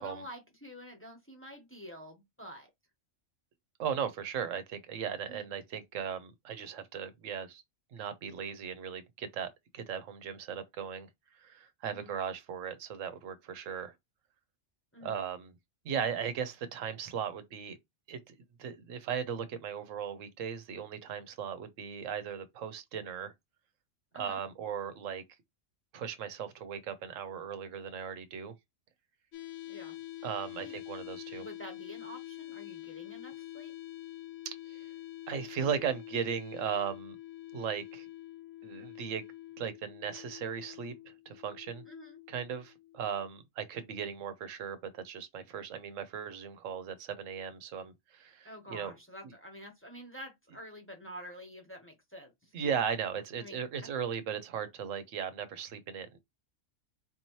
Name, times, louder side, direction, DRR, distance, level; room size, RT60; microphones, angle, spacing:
voice 1, 0.0-2.7 5.3-5.5 11.9-12.1 14.9-15.2 24.1-24.4 29.7-30.0 30.6-30.8 31.4-33.7 41.9-42.2 48.4-52.7 53.4-53.9, equal, 10° left, 0.9 m, -48 dB
voice 2, 3.8-7.6 7.9-11.1 11.4-13.9 15.0-15.5 15.8-17.8 18.1-23.3 24.1-25.2 25.9-28.5 30.2-31.5 34.4-34.8 35.3-37.2 37.5-38.1 38.6-39.3 39.6-40.9 41.3-41.8 42.3-48.9 52.5-56.2, right 7 dB, 85° right, 1.1 m, -37 dB
sound 1, 29.3-43.3, left 15 dB, 80° left, 1.0 m, -46 dB
4.2 x 2.8 x 3.0 m
omnidirectional pair, 1.3 m